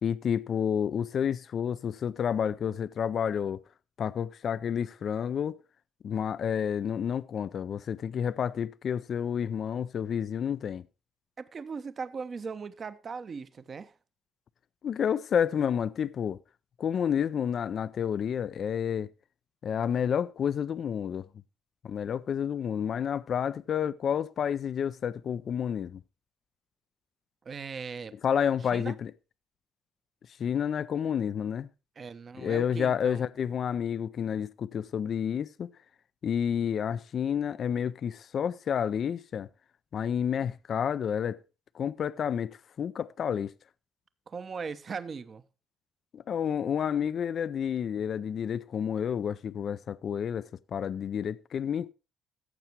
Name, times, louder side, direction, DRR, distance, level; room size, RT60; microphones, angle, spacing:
voice 1, 0.0-3.6 4.0-5.6 6.0-10.9 14.8-16.4 16.8-19.1 19.6-21.3 21.8-26.0 28.2-29.1 30.4-31.7 32.4-35.7 36.2-39.5 39.9-41.4 41.7-43.5 46.1-51.9, left 8 dB, 50° left, 0.4 m, -30 dB
voice 2, 11.4-13.9 27.4-28.2 28.7-29.0 32.0-33.2 44.3-45.4, right 5 dB, 40° right, 0.9 m, -39 dB
15.0 x 6.9 x 4.6 m
cardioid pair, 95°, 0 cm